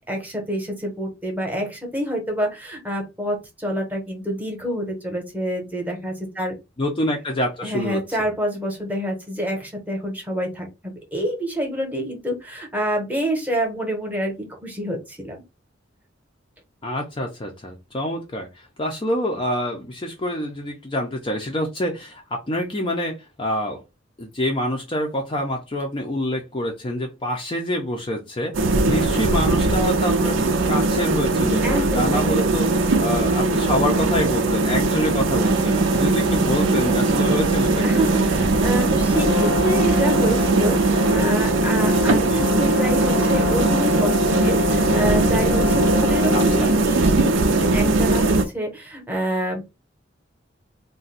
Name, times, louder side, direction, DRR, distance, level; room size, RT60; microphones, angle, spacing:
voice 1, 0.1-6.5 7.6-14.3 14.6-15.4 31.6-32.6 37.8-49.6, equal, 10° right, 0.9 m, -27 dB
voice 2, 6.8-8.0 16.8-18.5 18.8-23.8 24.2-38.1 42.3-42.5 46.3-46.7, equal, 25° left, 0.5 m, -26 dB
sound 1, 28.5-48.4, right 2 dB, 90° right, 0.6 m, -20 dB
sound 2, 35.4-41.3, right 5 dB, 25° right, 0.3 m, -27 dB
Brass instrument, 39.1-46.9, left 6 dB, 80° left, 0.6 m, -28 dB
2.5 x 2.2 x 4.0 m
head